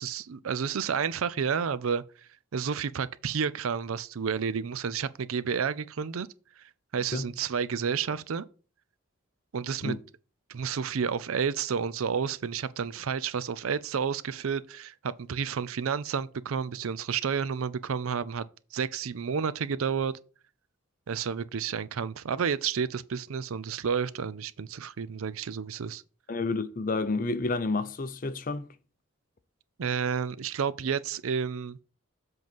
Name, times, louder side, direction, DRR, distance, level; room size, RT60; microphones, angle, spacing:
voice 1, 0.0-2.0 2.5-6.3 6.9-8.5 9.5-10.0 10.5-18.5 18.7-20.2 21.1-26.0 29.8-31.8, right 6 dB, 80° right, 0.5 m, -30 dB
voice 2, 26.3-28.7, left 3 dB, 40° left, 0.6 m, -30 dB
7.7 x 3.9 x 5.3 m
head